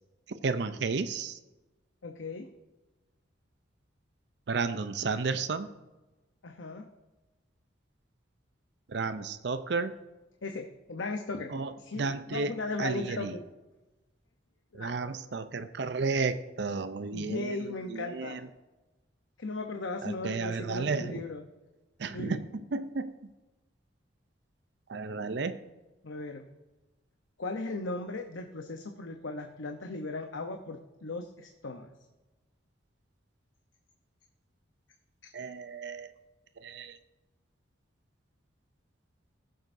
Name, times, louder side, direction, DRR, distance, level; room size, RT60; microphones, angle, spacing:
voice 1, 0.4-1.4 4.5-5.7 8.9-9.9 11.5-12.5 12.8-13.3 14.7-17.6 17.9-18.4 20.0-21.2 22.0-22.4 22.7-23.1 24.9-25.6 35.3-36.1 36.6-37.0, right 4 dB, 60° right, 11 dB, 0.5 m, -32 dB
voice 2, 2.0-2.5 6.4-6.8 10.4-13.4 14.7-15.0 17.1-18.4 19.4-21.4 22.1-22.4 26.0-26.4 27.4-31.9 35.2-35.3, left 3 dB, 80° left, 4 dB, 0.8 m, -37 dB
18.5 x 7.6 x 2.6 m, 1.1 s
head